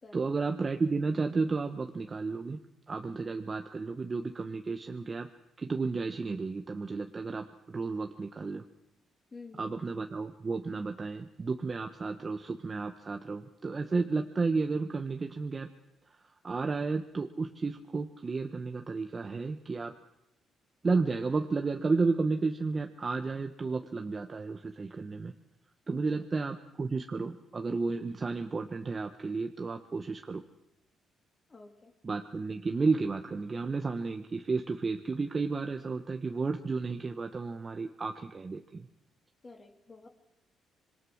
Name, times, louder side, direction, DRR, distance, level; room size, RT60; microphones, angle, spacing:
voice 1, 0.1-2.6 2.9-5.3 5.6-8.6 9.6-15.7 16.4-19.9 20.8-25.3 25.9-30.4 32.0-38.9, right 4 dB, 30° right, 5 dB, 1.4 m, -32 dB
voice 2, 9.3-9.7 25.9-26.2 31.5-31.9 39.4-40.1, left 3 dB, 30° left, 3 dB, 2.8 m, -50 dB
26.0 x 22.5 x 6.5 m, 0.87 s
cardioid pair, 90°, 0 cm